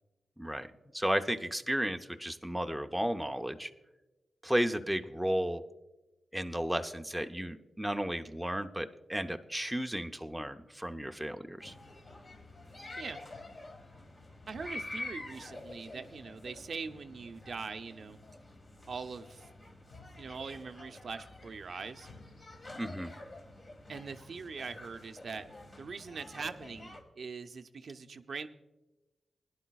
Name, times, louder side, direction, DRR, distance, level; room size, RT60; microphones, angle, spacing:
voice 1, 0.4-0.7 0.9-3.7 4.4-5.6 6.3-11.7 22.8-23.1, equal, 5° right, 6 dB, 0.5 m, -33 dB
sound 1, 11.6-27.0, left 2 dB, 35° left, 1.7 m, -48 dB
voice 2, 14.5-18.2 18.9-19.5 20.2-22.1 23.9-25.4 25.8-28.5, right 5 dB, 55° right, 9 dB, 0.6 m, -42 dB
20.0 x 11.0 x 2.3 m, 1.1 s
wide cardioid pair, 125°, 0 cm